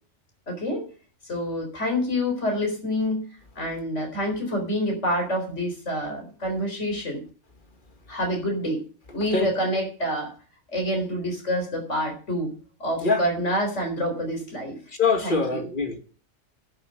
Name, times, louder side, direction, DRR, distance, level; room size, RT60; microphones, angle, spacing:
voice 1, 0.5-0.9 1.2-3.2 3.6-7.2 8.1-8.8 9.1-10.3 10.7-12.5 12.8-14.8 15.2-15.7, equal, 80° left, 4.4 m, -27 dB
voice 2, 15.0-16.0, left 4 dB, 45° left, 1.9 m, -23 dB
10.5 x 7.3 x 7.8 m
omnidirectional pair, 1.2 m